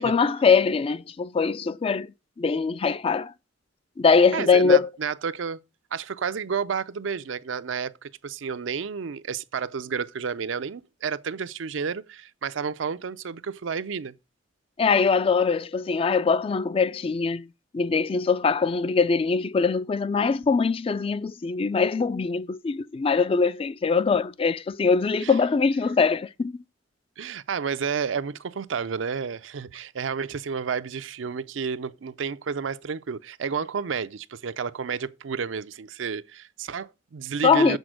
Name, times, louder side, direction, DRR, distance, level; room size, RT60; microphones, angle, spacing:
voice 1, 0.0-2.1 2.4-3.3 4.0-4.9 14.8-17.5 17.7-26.5 37.4-37.8, left 5 dB, 30° left, 0.3 m, -22 dB
voice 2, 4.3-5.6 5.9-14.1 25.2-25.3 27.2-37.8, right 6 dB, 75° right, 0.5 m, -31 dB
8.0 x 4.4 x 6.3 m
head